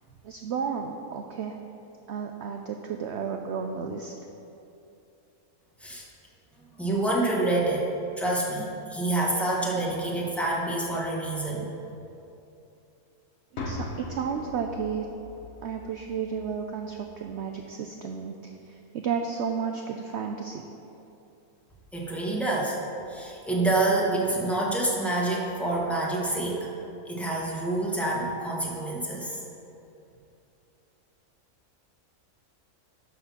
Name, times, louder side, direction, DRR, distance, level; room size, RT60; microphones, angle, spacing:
voice 1, 0.2-1.6 2.1-4.1 13.6-15.1 15.6-18.4 18.7-20.6, right 6 dB, 70° right, 4 dB, 0.7 m, -32 dB
voice 2, 6.8-7.9 8.2-11.7 21.9-22.8 23.1-26.7 27.1-29.4, right 2 dB, ahead, -3 dB, 1.1 m, -27 dB
sound 1, 13.6-17.5, left 2 dB, 65° left, 1.2 m, -40 dB
11.5 x 4.1 x 5.9 m, 2.8 s
omnidirectional pair, 1.6 m